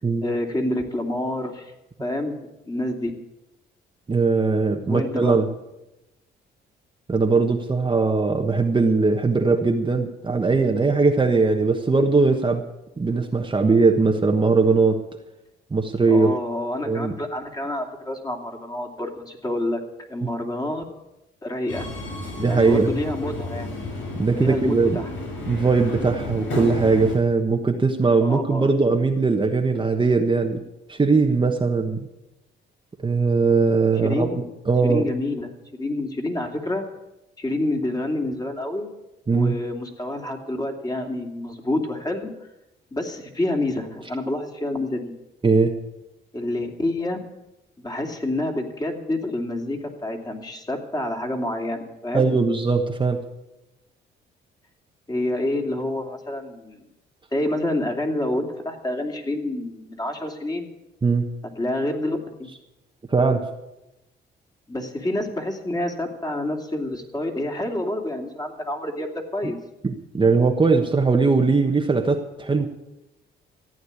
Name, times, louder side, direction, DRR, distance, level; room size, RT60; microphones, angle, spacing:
voice 1, 0.2-1.7 2.0-2.3 2.7-3.1 4.9-5.4 16.1-19.8 20.1-20.9 21.4-21.9 22.4-23.7 24.4-25.1 28.2-28.7 34.0-34.3 34.8-36.8 37.4-38.9 39.3-42.3 42.9-45.1 46.3-47.2 47.8-52.3 55.1-56.8 57.3-60.7 61.6-62.5 64.7-69.6, left 1 dB, 20° left, 2 dB, 2.8 m, -28 dB
voice 2, 4.1-5.5 7.1-12.6 13.0-15.0 15.7-16.3 16.9-17.1 22.4-22.9 24.1-25.0 25.5-30.6 30.9-32.1 33.0-35.1 39.3-39.6 45.4-45.7 52.1-53.2 61.0-61.3 63.1-63.5 69.8-72.7, right 4 dB, 25° right, 3 dB, 1.3 m, -20 dB
Subway metro underground, 21.7-27.1, left 2 dB, 75° left, 6.5 m, -32 dB
15.0 x 9.2 x 8.4 m, 0.94 s
cardioid pair, 90°, 20 cm